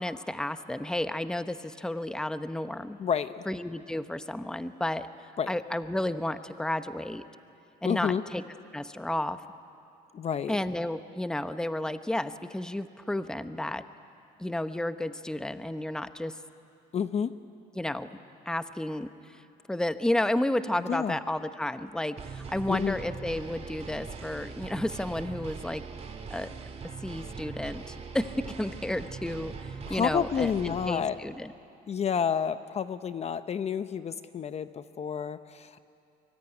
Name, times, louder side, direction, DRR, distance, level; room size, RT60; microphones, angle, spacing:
voice 1, 0.0-3.0 3.5-7.2 7.8-8.4 8.7-9.4 10.5-13.8 14.4-16.4 17.7-18.1 18.5-19.4 19.7-25.8 26.3-26.5 26.8-31.5, left 1 dB, 5° left, 11 dB, 0.9 m, -32 dB
voice 2, 3.0-3.5 5.4-5.5 7.8-8.2 10.1-10.6 16.9-17.3 20.9-21.2 22.7-23.0 29.9-31.2 31.9-35.8, left 7 dB, 40° left, 12 dB, 0.7 m, -30 dB
sound 1, 22.2-30.9, right 5 dB, 40° right, 2.4 m, -41 dB
23.5 x 23.0 x 10.0 m, 2.6 s
cardioid pair, 110°, 17 cm